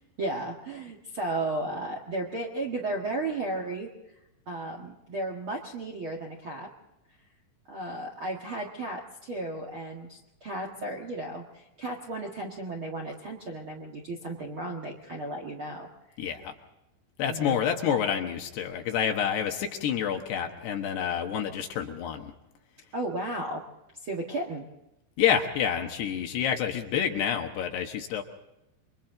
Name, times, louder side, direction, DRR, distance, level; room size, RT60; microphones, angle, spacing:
voice 1, 0.0-3.9 4.4-6.7 7.7-15.9 17.3-17.6 22.9-23.6 24.0-24.7, right 2 dB, 50° right, 1 dB, 1.5 m, -34 dB
voice 2, 16.2-16.5 17.2-22.3 25.2-28.2, left 8 dB, 70° left, 4 dB, 3.1 m, -28 dB
28.0 x 23.5 x 3.9 m, 0.89 s
omnidirectional pair, 5.4 m